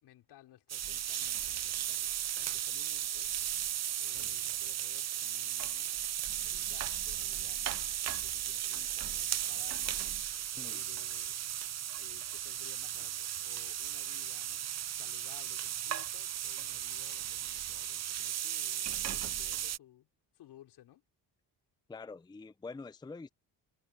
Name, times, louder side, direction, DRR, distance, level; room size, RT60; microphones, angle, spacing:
voice 1, 0.0-2.1 2.5-3.4 4.0-5.9 6.4-10.0 10.5-11.4 12.0-18.9 19.2-20.1 20.3-21.0, left 13 dB, 80° left, 4.1 m, -58 dB
sound 1, 0.7-19.8, right 11 dB, 40° right, 0.6 m, -36 dB
voice 2, 21.9-23.3, left 3 dB, 10° left, 0.6 m, -45 dB
cardioid pair, 95°, 39 cm